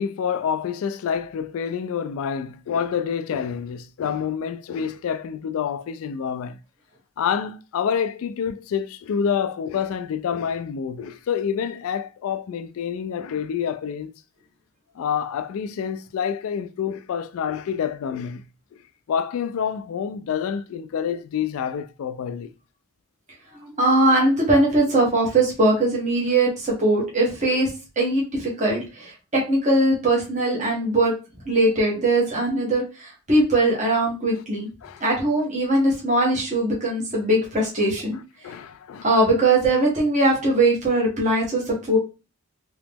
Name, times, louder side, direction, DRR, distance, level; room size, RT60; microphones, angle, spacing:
voice 1, 0.0-6.6 7.2-14.1 15.0-18.5 19.1-22.5 34.8-35.0 38.4-39.1, left 7 dB, 75° left, 0.3 m, -27 dB
voice 2, 23.6-27.7 28.0-31.1 31.5-34.7 35.0-38.2 39.0-42.0, right 2 dB, 35° right, 1.2 m, -21 dB
3.0 x 2.9 x 3.4 m
head